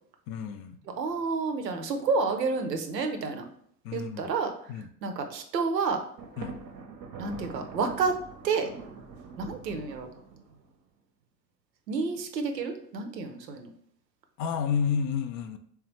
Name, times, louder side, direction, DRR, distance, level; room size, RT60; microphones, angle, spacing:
voice 1, 0.3-0.8 3.8-4.3 4.7-4.9 6.4-6.6 14.4-15.6, left 6 dB, 45° left, 9 dB, 0.4 m, -30 dB
voice 2, 1.0-3.4 3.9-4.7 5.0-6.0 7.2-8.2 8.4-8.7 9.4-10.1 11.9-13.7, right 4 dB, 85° right, 6 dB, 0.6 m, -29 dB
Thunder, 6.2-10.7, right 5 dB, 40° right, 0.6 m, -44 dB
3.4 x 3.3 x 3.0 m, 0.64 s
figure-of-eight pair, 55°, 49 cm